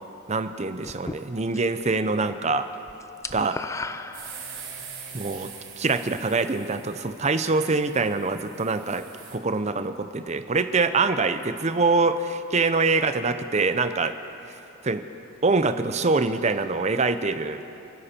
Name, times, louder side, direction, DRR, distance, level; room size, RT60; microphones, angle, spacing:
voice 1, 0.3-2.7 3.3-3.6 5.1-5.5 5.8-9.0 9.3-14.1 14.8-15.0 15.4-17.6, right 3 dB, 30° right, 10 dB, 0.6 m, -24 dB
sound 1, 0.8-1.8 2.1-4.8, left 3 dB, 15° left, 0.3 m, -36 dB
sound 2, 4.1-9.4, right 6 dB, 65° right, 3.2 m, -43 dB
28.0 x 10.5 x 4.4 m, 2.9 s
head